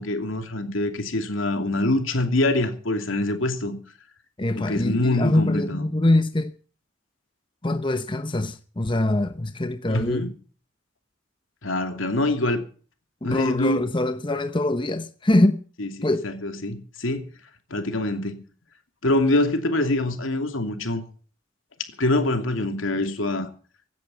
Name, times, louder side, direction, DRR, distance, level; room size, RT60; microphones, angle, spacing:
voice 1, 0.0-3.7 4.5-5.8 9.9-10.3 11.6-12.6 13.2-13.9 15.8-15.9 16.2-17.3 17.7-18.4 19.0-21.0 22.0-23.5, left 2 dB, 80° left, 2.8 m, -24 dB
voice 2, 4.4-6.5 7.6-10.3 13.2-15.6 16.0-16.3, left 1 dB, 25° left, 0.9 m, -23 dB
16.5 x 10.5 x 7.0 m
head